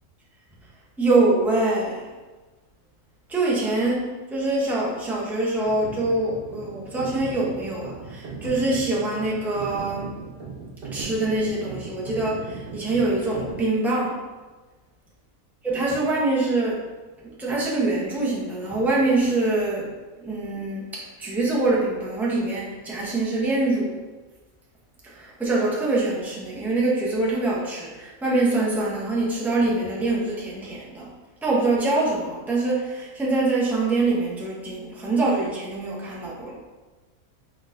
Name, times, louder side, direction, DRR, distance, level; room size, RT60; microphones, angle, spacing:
voice 1, 1.0-2.0 3.3-4.1 4.3-10.1 10.9-12.4 12.7-14.2 15.6-16.8 17.4-19.9 20.2-24.0 25.2-31.1 31.4-36.6, right 2 dB, ahead, -5 dB, 0.5 m, -24 dB
sound 1, 5.6-13.6, right 4 dB, 50° right, 0.9 m, -37 dB
4.1 x 3.8 x 2.6 m, 1.2 s
omnidirectional pair, 1.5 m